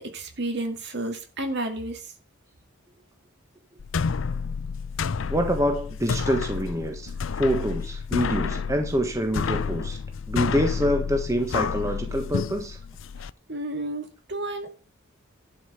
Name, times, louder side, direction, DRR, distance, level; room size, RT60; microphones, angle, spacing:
voice 1, 0.0-2.0 13.5-14.8, right 1 dB, 55° right, 2.4 m, -31 dB
sound 1, 3.8-13.3, left 5 dB, 65° left, 0.5 m, -30 dB
voice 2, 5.3-10.0 10.3-12.8, equal, 15° right, 1.3 m, -26 dB
11.5 x 5.4 x 7.8 m
head